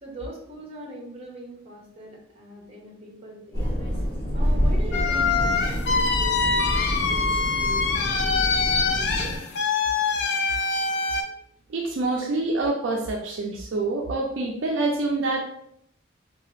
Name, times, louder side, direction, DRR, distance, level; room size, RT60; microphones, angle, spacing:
voice 1, 0.0-3.7 4.3-9.5, right 1 dB, 30° right, -1 dB, 0.7 m, -41 dB
sound 1, 3.5-9.4, equal, 20° left, 1.4 m, -27 dB
sound 2, 4.9-11.2, left 4 dB, 55° left, 0.4 m, -24 dB
voice 2, 11.7-15.4, right 2 dB, 65° right, 1 dB, 0.4 m, -26 dB
2.7 x 2.3 x 3.1 m, 0.72 s
head